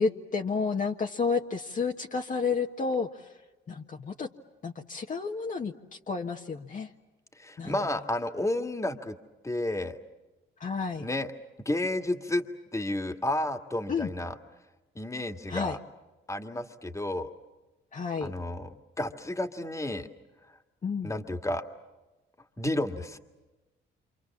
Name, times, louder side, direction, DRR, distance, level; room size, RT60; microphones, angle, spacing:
voice 1, 0.0-3.2 3.7-4.3 4.6-6.9 7.6-7.8 10.6-11.0 13.9-14.1 15.5-15.8 17.9-18.3 20.8-21.1, left 5 dB, 40° left, 2 dB, 1.4 m, -31 dB
voice 2, 7.4-9.2 9.4-10.0 11.0-11.3 11.7-12.4 12.7-14.3 15.0-15.8 16.3-17.3 18.2-20.1 21.0-21.6 22.6-23.2, left 1 dB, 15° left, 7 dB, 2.0 m, -31 dB
28.0 x 26.5 x 7.3 m, 1.1 s
cardioid pair, 90°, 20 cm